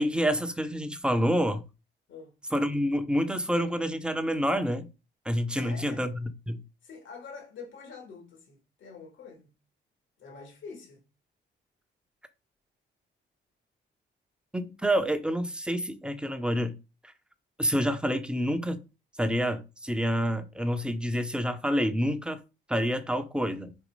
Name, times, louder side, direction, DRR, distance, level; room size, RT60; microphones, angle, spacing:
voice 1, 0.0-1.6 2.5-4.9 5.2-6.6 14.5-16.8 17.6-18.8 19.2-22.4 22.7-23.7, equal, 5° right, 1.0 m, -28 dB
voice 2, 5.5-6.0 6.8-9.5 10.2-11.0, left 5 dB, 75° left, 2.8 m, -46 dB
5.4 x 4.2 x 5.0 m
cardioid pair, 90°, 20 cm